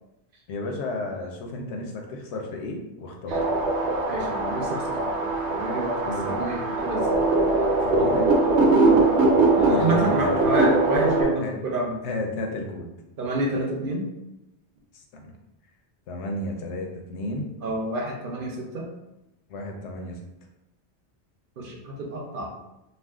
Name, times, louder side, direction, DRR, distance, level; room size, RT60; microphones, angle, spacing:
voice 1, 0.5-3.4 6.0-6.4 7.8-8.3 9.7-10.3 11.4-11.5 12.0-12.9 14.9-15.4 16.1-17.5 19.5-20.2, left 2 dB, 80° left, 2 dB, 0.9 m, -32 dB
sound 1, 3.3-11.2, right 2 dB, 85° right, 0.9 m, -22 dB
voice 2, 4.1-7.2 8.0-8.1 8.8-9.1 9.5-12.0 13.2-14.1 17.6-18.9 21.6-22.5, right 2 dB, 60° right, -1 dB, 0.7 m, -29 dB
2.4 x 2.3 x 3.5 m, 0.93 s
omnidirectional pair, 1.1 m